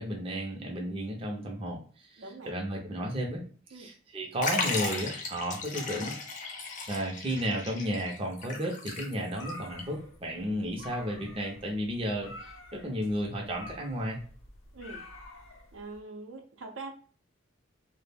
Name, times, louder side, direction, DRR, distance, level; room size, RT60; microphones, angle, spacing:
voice 1, 0.0-3.4 3.7-6.1 6.9-14.2, equal, 30° right, 0 dB, 0.5 m, -33 dB
voice 2, 2.2-2.5 3.7-3.9 14.7-15.0 15.7-16.9, right 3 dB, 80° right, 3 dB, 0.6 m, -43 dB
Liquid, 4.4-9.5 9.8-9.9 10.8-10.9, left 3 dB, 40° left, 0.5 m, -35 dB
sound 1, 9.3-16.0, left 1 dB, 90° left, 0.5 m, -48 dB
2.2 x 2.0 x 3.3 m, 0.42 s
head